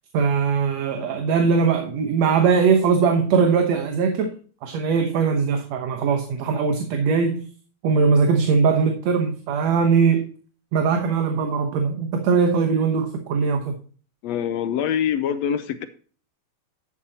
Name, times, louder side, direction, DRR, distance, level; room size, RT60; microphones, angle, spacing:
voice 1, 0.1-4.3 4.6-7.4 7.8-10.3 10.7-13.8, right 5 dB, 70° right, 2.3 m, -20 dB
voice 2, 14.2-15.9, left 9 dB, 75° left, 1.8 m, -24 dB
11.5 x 8.6 x 2.9 m
omnidirectional pair, 3.3 m